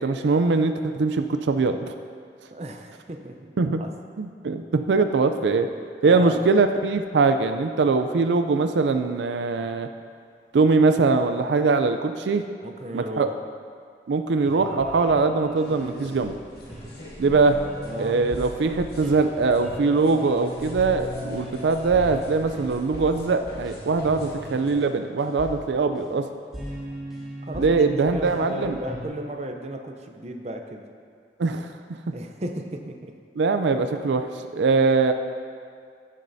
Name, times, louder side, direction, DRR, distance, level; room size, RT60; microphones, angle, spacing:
voice 1, 0.0-1.9 3.6-3.8 4.2-5.7 6.0-9.9 10.5-12.4 12.9-13.3 14.1-16.4 17.2-17.6 18.0-26.2 27.5-28.8 31.4-31.7 33.4-34.3 34.5-35.1, right 4 dB, 85° right, 7 dB, 0.4 m, -22 dB
voice 2, 2.5-3.4 3.8-3.9 6.0-6.4 12.6-13.4 17.8-18.2 27.4-30.9 32.1-33.2, right 1 dB, 35° right, 4 dB, 0.6 m, -35 dB
sound 1, 14.4-29.0, equal, ahead, 1.9 m, -39 dB
sound 2, 15.6-24.7, equal, 65° left, 2.2 m, -44 dB
15.0 x 7.3 x 2.7 m, 2.2 s
head